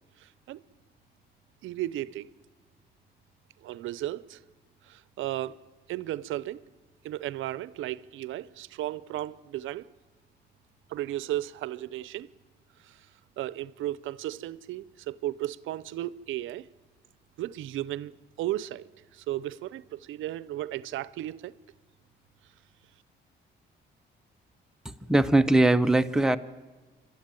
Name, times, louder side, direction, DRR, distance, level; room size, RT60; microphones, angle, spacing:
voice 1, 0.2-0.6 1.6-2.3 3.6-4.4 4.8-5.6 5.9-6.6 7.0-9.9 10.9-12.3 12.8-13.1 13.4-16.7 17.4-18.1 18.4-18.8 19.1-21.5, right 14 dB, 85° right, 0.6 m, -34 dB
voice 2, 24.8-26.4, right 2 dB, 5° right, 0.9 m, -21 dB
26.0 x 13.0 x 9.1 m
cardioid pair, 90°, 20 cm